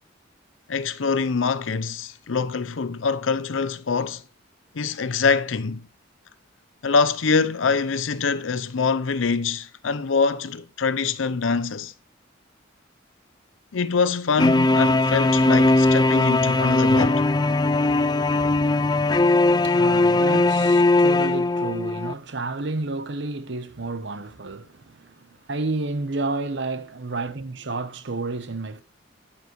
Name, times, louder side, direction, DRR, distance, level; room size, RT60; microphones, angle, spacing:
voice 1, 0.7-4.2 4.7-5.9 6.8-11.9 13.7-17.2, left 5 dB, 85° left, 0.6 m, -24 dB
sound 1, 14.4-22.1, left 2 dB, 20° left, 0.3 m, -19 dB
voice 2, 19.6-28.8, right 3 dB, 65° right, 0.9 m, -31 dB
9.2 x 8.8 x 3.1 m
head